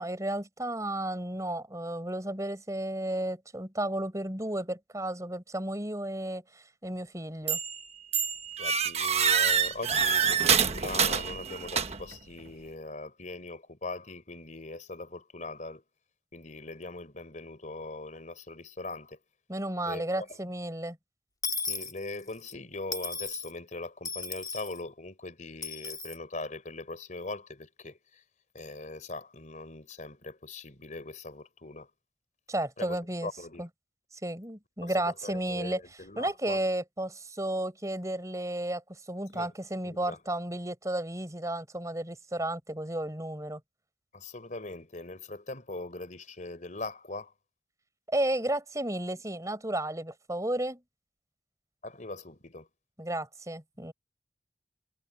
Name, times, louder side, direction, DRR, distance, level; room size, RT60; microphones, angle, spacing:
voice 1, 0.0-6.4 6.8-7.6 19.5-21.0 32.5-33.3 33.6-33.7 34.2-35.8 36.2-38.8 39.1-43.6 48.1-50.8 53.0-53.9, right 1 dB, 20° right, 5.0 m, -33 dB
sound 1, 7.5-7.8 8.1-12.2, right 7 dB, 40° right, 1.2 m, -26 dB
voice 2, 8.6-15.8 16.3-19.2 19.9-20.3 21.6-28.2 28.5-31.9 32.8-33.6 34.8-36.6 39.3-39.5 39.8-40.2 44.1-47.3 51.8-52.7, left 2 dB, 45° left, 3.8 m, -41 dB
Dishes pots and pans / Coin (dropping), 21.4-22.5 22.9-23.5 24.0-24.8 25.6-26.2, left 4 dB, 20° left, 3.5 m, -35 dB
head